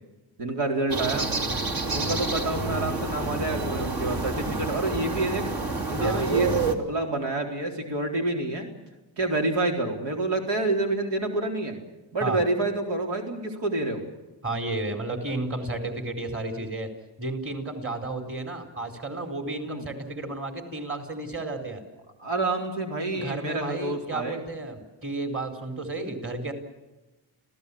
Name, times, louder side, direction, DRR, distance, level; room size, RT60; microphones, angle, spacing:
voice 1, 0.4-1.3 1.9-5.5 5.9-8.7 9.2-11.8 12.1-14.0 19.6-19.9 22.2-24.4, right 2 dB, 90° right, 2 dB, 4.1 m, -28 dB
sound 1, 0.9-6.7, right 3 dB, 60° right, 3.1 m, -28 dB
voice 2, 14.4-16.9 17.2-21.8 23.1-26.5, right 2 dB, 30° right, 6 dB, 4.4 m, -32 dB
28.0 x 16.5 x 8.6 m, 1.1 s
cardioid pair, 95°, 41 cm